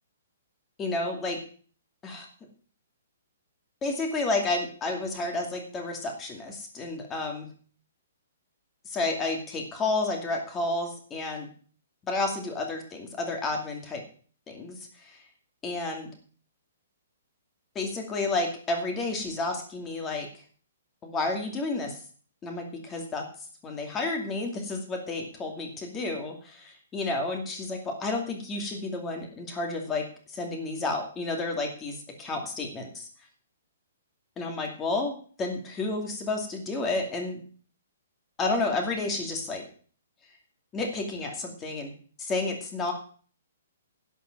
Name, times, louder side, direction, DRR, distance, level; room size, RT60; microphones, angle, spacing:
voice 1, 0.8-1.4 2.0-2.3 3.8-7.5 8.9-11.5 12.0-14.0 14.5-14.8 15.0-15.2 15.6-16.1 17.7-20.3 21.0-22.0 22.4-23.3 23.6-30.1 30.3-33.1 34.4-37.4 38.4-39.6 40.7-41.9 42.2-42.9, left 2 dB, 15° left, 3 dB, 2.4 m, -31 dB
11.5 x 5.3 x 8.9 m, 0.44 s
hypercardioid pair, 155°, 0 cm